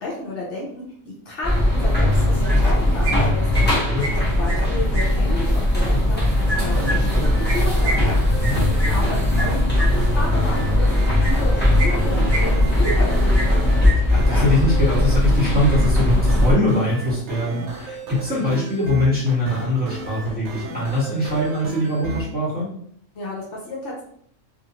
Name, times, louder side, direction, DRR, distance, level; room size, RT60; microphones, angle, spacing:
voice 1, 0.0-3.9 4.2-7.1 7.4-8.0 8.7-13.6 23.1-24.0, left 1 dB, 70° left, -3 dB, 1.0 m, -32 dB
sound 1, 1.4-16.5, left 1 dB, 10° left, 0.8 m, -19 dB
sound 2, 2.1-2.8 3.0-5.0 6.4-9.9 11.2-11.4 11.7-12.5 12.8-13.6 13.8-13.9 14.2-14.4, right 1 dB, 30° right, 0.4 m, -29 dB
sound 3, 6.3-22.2, right 3 dB, 70° right, 0.8 m, -34 dB
voice 2, 8.2-8.6 14.1-22.7, left 1 dB, 5° right, -10 dB, 1.4 m, -22 dB
2.5 x 2.4 x 2.8 m, 0.66 s
omnidirectional pair, 1.3 m